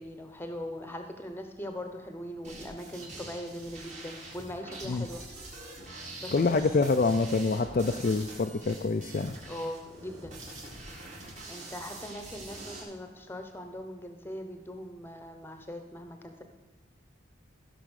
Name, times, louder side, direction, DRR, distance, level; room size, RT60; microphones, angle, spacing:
voice 1, 0.0-5.3 6.2-6.6 9.5-10.4 11.5-16.4, left 1 dB, 10° left, 5 dB, 0.9 m, -40 dB
sound 1, 2.4-12.8, right 2 dB, 35° right, 2.0 m, -45 dB
voice 2, 6.3-9.3, left 3 dB, 40° left, 6 dB, 0.4 m, -26 dB
14.5 x 5.9 x 6.4 m, 1.1 s
head